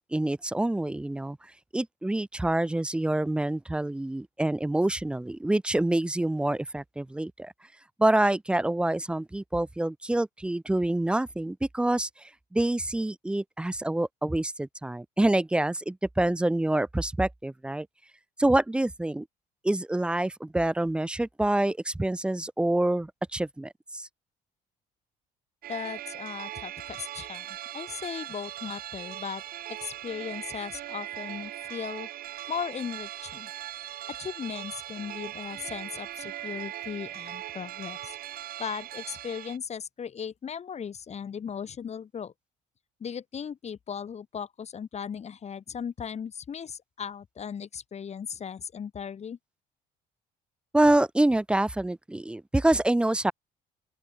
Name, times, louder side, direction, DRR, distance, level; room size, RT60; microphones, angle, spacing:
voice 1, 0.1-1.4 1.7-7.5 8.0-12.1 12.5-17.9 18.4-19.3 19.6-24.1 50.7-53.3, right 1 dB, 5° right, 0.3 m, -26 dB
sound 1, 25.6-39.6, right 13 dB, 60° right, 1.0 m, -39 dB
voice 2, 25.7-29.4 29.7-32.1 32.5-33.5 34.2-38.2 38.6-42.3 43.0-49.4, left 7 dB, 40° left, 3.6 m, -37 dB
open air
cardioid pair, 110°, 17 cm